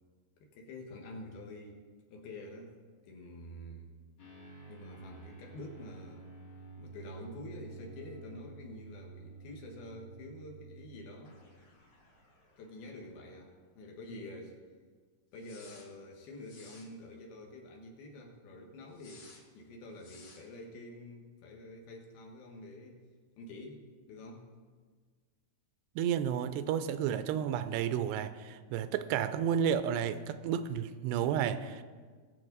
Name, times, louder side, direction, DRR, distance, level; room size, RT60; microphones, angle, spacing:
voice 1, 0.5-1.8 2.1-2.8 3.0-3.9 4.7-11.4 12.6-14.6 15.3-23.0 23.4-24.5, left 1 dB, 70° left, 3.3 m, -48 dB
sound 1, 4.2-13.3 13.6-13.7 15.4-15.9 16.4-16.9 18.9-19.4 20.0-20.4, right 3 dB, 50° left, 3.0 m, -52 dB
voice 2, 26.0-31.8, right 9 dB, 85° right, 2.6 m, -31 dB
20.0 x 7.6 x 4.0 m
omnidirectional pair, 4.8 m